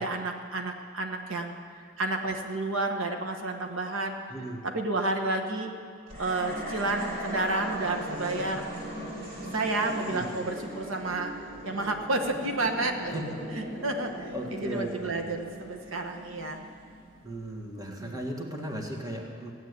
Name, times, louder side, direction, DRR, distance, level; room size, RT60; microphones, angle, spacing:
voice 1, 0.0-1.5 2.0-4.1 4.6-5.7 6.2-8.7 9.5-11.3 11.6-13.1 13.6-16.6 17.9-18.2, right 2 dB, 85° right, 4 dB, 1.2 m, -30 dB
voice 2, 4.3-4.6 10.1-10.3 13.1-13.4 14.3-15.2 17.2-19.5, right 1 dB, 20° right, 1 dB, 1.7 m, -36 dB
sound 1, 6.1-17.4, right 1 dB, 45° right, 4.4 m, -39 dB
16.0 x 8.1 x 9.5 m, 2.2 s
head